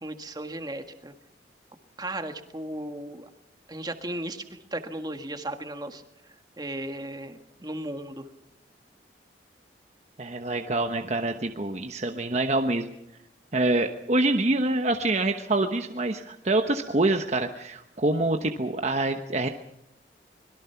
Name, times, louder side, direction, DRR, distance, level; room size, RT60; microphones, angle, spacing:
voice 1, 0.0-1.1 2.0-3.3 3.7-6.0 6.6-8.2, right 1 dB, 25° right, 7 dB, 1.7 m, -35 dB
voice 2, 10.2-12.9 13.5-19.5, right 2 dB, 40° right, 5 dB, 1.1 m, -26 dB
25.5 x 21.5 x 5.8 m, 0.77 s
head